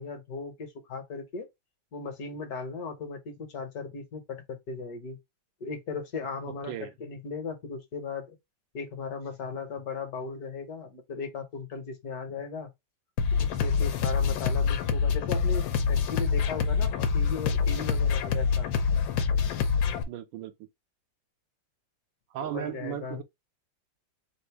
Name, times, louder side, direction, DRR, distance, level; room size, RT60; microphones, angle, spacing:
voice 1, 0.0-1.5 1.9-5.2 5.6-8.4 8.7-12.7 13.4-18.7 22.4-23.2, left 4 dB, 60° left, 1.4 m, -37 dB
sound 1, 13.2-20.0, left 6 dB, 85° left, 1.5 m, -26 dB
voice 2, 20.1-20.7 22.3-23.2, right 12 dB, 80° right, 1.4 m, -36 dB
3.5 x 2.6 x 4.6 m
omnidirectional pair, 2.0 m